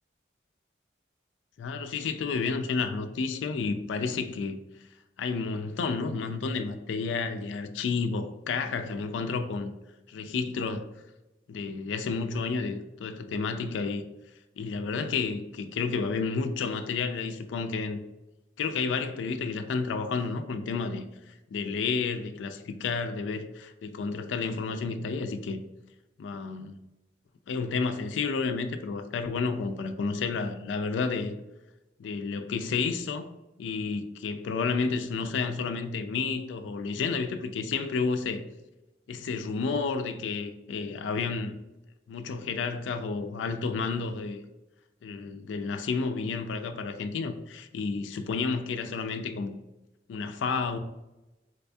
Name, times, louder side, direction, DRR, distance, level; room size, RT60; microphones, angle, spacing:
voice 1, 1.6-4.6 5.2-9.7 10.1-10.9 11.5-14.0 14.6-18.0 18.6-25.6 26.2-26.8 27.5-31.3 32.0-33.3 33.6-38.4 39.1-41.5 42.1-44.4 45.0-49.6 50.1-50.8, left 4 dB, 85° left, 0.3 m, -31 dB
4.0 x 2.2 x 2.6 m
head